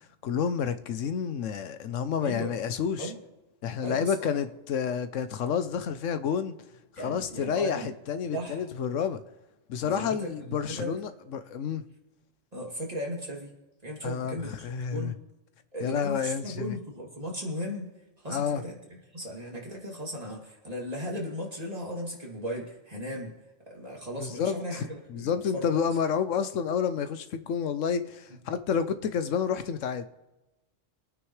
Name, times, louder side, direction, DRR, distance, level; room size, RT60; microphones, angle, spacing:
voice 1, 0.2-3.1 3.6-6.5 7.0-9.2 9.7-11.8 14.0-15.1 15.8-16.7 18.3-18.6 24.2-30.0, left 7 dB, 80° left, 1.1 m, -30 dB
voice 2, 2.2-2.5 3.0-3.2 3.8-4.4 7.0-7.9 8.3-8.6 9.8-10.9 12.5-13.5 13.8-15.1 15.7-17.9 18.2-18.8 19.1-23.3 23.7-25.7, equal, 30° right, 2.8 m, -36 dB
24.5 x 9.2 x 3.2 m
omnidirectional pair, 1.3 m